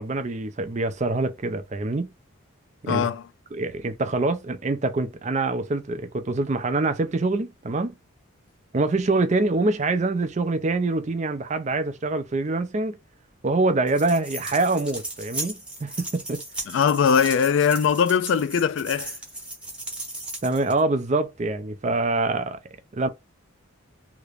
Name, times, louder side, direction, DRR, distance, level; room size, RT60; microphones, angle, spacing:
voice 1, 0.0-2.1 2.8-3.1 3.5-7.9 8.7-13.0 13.4-16.4 20.4-22.6 22.9-23.1, right 2 dB, 35° right, 0.5 m, -25 dB
voice 2, 2.9-3.2 16.7-19.1, left 7 dB, 60° left, 0.3 m, -21 dB
sound 1, 13.9-20.8, right 1 dB, 5° right, 0.9 m, -36 dB
2.9 x 2.5 x 3.2 m
head